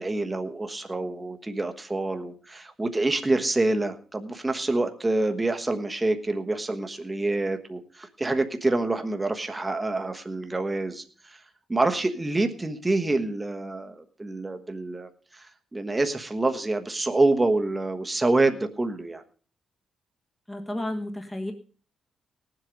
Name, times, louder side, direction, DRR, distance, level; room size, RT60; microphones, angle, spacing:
voice 1, 0.0-11.4 11.7-15.1 15.7-19.2, right 2 dB, 15° right, 6 dB, 1.2 m, -26 dB
voice 2, 20.5-21.5, left 1 dB, 10° left, 4 dB, 1.5 m, -32 dB
18.0 x 7.8 x 5.2 m, 0.41 s
cardioid pair, 125°, 0 cm